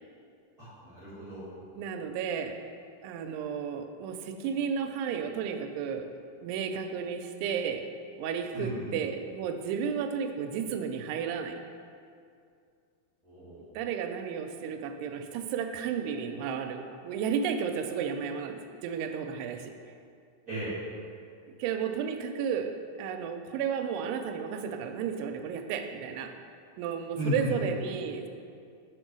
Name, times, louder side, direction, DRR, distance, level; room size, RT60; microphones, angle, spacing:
voice 1, 0.6-1.4 8.5-8.9 13.2-13.7 20.5-20.7 27.2-27.5, equal, 35° right, -13 dB, 1.5 m, -35 dB
voice 2, 1.7-2.6 3.0-6.1 6.4-7.8 8.2-11.6 13.8-19.7 21.6-26.3 26.8-28.3, right 7 dB, 90° right, 6 dB, 2.6 m, -33 dB
6.5 x 4.4 x 6.1 m, 2.3 s
omnidirectional pair, 4.6 m